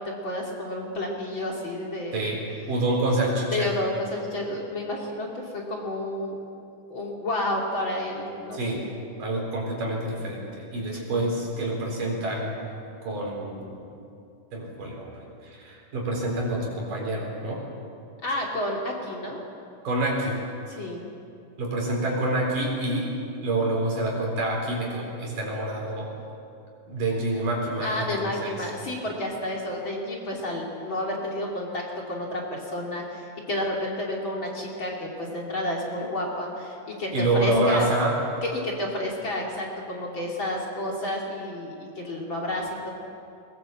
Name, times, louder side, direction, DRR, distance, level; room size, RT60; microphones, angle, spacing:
voice 1, 0.0-2.3 3.5-6.4 6.9-8.9 10.9-11.1 18.2-19.4 20.7-21.0 27.8-37.9 38.4-42.9, left 1 dB, 35° left, -2 dB, 3.3 m, -30 dB
voice 2, 2.7-3.7 8.5-8.8 9.2-12.6 13.0-13.8 14.5-15.1 15.4-17.6 19.8-20.4 21.6-23.1 23.4-26.1 26.9-28.6 37.1-38.2, right 1 dB, 75° right, -1 dB, 5.7 m, -27 dB
21.0 x 20.5 x 7.7 m, 2.5 s
omnidirectional pair, 3.8 m